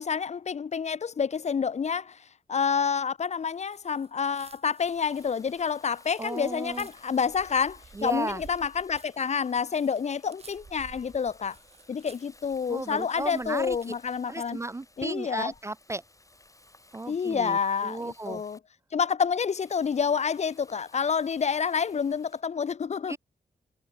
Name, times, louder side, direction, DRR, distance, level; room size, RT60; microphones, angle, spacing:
voice 1, 0.0-11.6 11.9-14.6 15.0-15.5 17.1-18.6 18.9-23.2, left 6 dB, 45° left, 0.5 m, -28 dB
sound 1, 3.6-14.2, right 4 dB, 40° right, 1.6 m, -54 dB
Water tap faucet, 4.8-18.6 19.6-22.4, left 2 dB, 20° left, 5.5 m, -57 dB
voice 2, 6.2-6.9 8.0-8.4 12.7-13.9 14.3-16.0 16.9-17.6 17.8-18.4 23.1-23.2, right 2 dB, 15° right, 0.4 m, -34 dB
cardioid pair, 80°, 17 cm